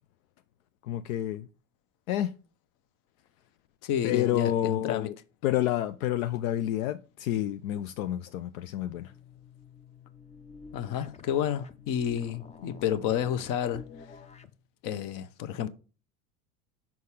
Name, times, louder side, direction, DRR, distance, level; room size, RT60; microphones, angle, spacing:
voice 1, 0.8-1.5 2.1-2.3 4.0-5.1 5.4-9.1, left 12 dB, 75° left, 0.5 m, -29 dB
voice 2, 3.8-5.1 10.7-13.9 14.8-15.7, left 10 dB, 50° left, 0.8 m, -30 dB
sound 1, 8.8-14.6, left 5 dB, 15° left, 0.4 m, -49 dB
5.9 x 4.1 x 4.8 m
hypercardioid pair, 85°, 41 cm